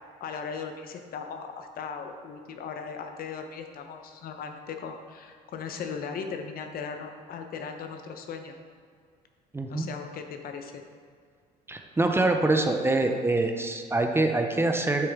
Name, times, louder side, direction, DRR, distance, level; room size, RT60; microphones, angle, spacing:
voice 1, 0.2-8.5 9.7-10.8, left 6 dB, 60° left, 5 dB, 0.8 m, -38 dB
voice 2, 9.5-9.9 11.7-15.1, right 2 dB, 15° right, 4 dB, 0.6 m, -25 dB
8.0 x 6.5 x 3.6 m, 2.1 s
cardioid pair, 110°, 17 cm